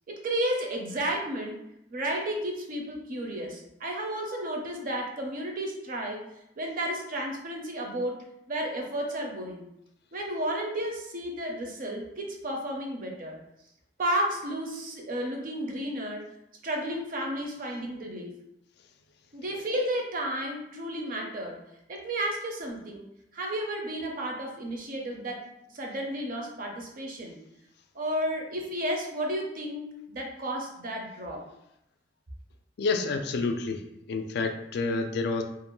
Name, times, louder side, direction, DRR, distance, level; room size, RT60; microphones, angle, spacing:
voice 1, 0.1-1.6 1.9-6.2 6.6-8.2 8.5-9.6 10.1-13.4 14.0-16.2 16.6-18.4 19.3-21.6 21.9-23.1 23.3-25.4 25.7-27.4 27.9-31.4, right 1 dB, 50° right, 1 dB, 0.5 m, -32 dB
voice 2, 32.8-33.8 34.1-35.4, left 3 dB, 60° left, 6 dB, 0.3 m, -28 dB
2.5 x 2.1 x 3.0 m, 0.81 s
head